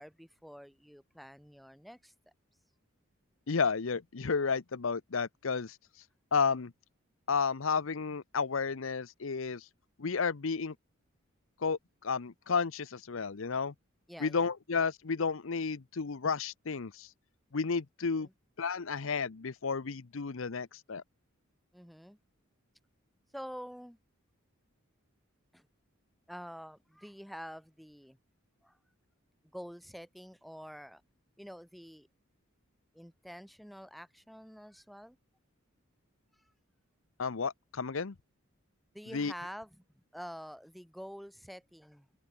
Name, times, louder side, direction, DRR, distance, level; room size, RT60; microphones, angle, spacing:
voice 1, 0.0-2.1 14.1-14.5 18.2-18.3 21.7-22.2 23.3-24.0 25.5-25.7 26.3-28.2 28.6-28.8 29.5-31.0 31.4-32.1 32.9-35.2 38.9-42.1, equal, ahead, 2.5 m, -47 dB
voice 2, 3.5-5.8 6.3-6.7 7.3-9.7 10.0-10.7 11.6-13.7 14.2-17.1 17.5-18.3 18.6-21.0 37.2-38.1 39.1-39.3, left 5 dB, 70° left, 0.7 m, -32 dB
head